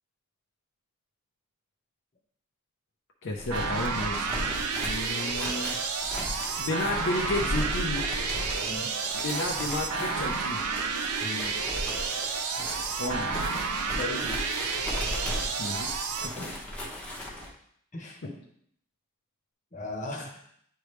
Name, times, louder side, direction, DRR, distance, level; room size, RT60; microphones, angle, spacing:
voice 1, 3.2-4.5 4.8-5.8 6.6-8.1 9.2-10.7 13.0-13.6 15.6-15.9 16.2-16.3, left 2 dB, 55° left, -1 dB, 0.6 m, -32 dB
sound 1, 3.3-17.5, left 1 dB, 5° left, 1.0 m, -37 dB
sound 2, 3.5-16.3, right 5 dB, 85° right, 0.6 m, -31 dB
voice 2, 11.2-11.5 13.9-14.4 16.3-16.6 17.9-18.4 19.7-20.3, left 2 dB, 35° left, 0 dB, 1.1 m, -37 dB
9.1 x 3.3 x 3.1 m, 0.67 s
head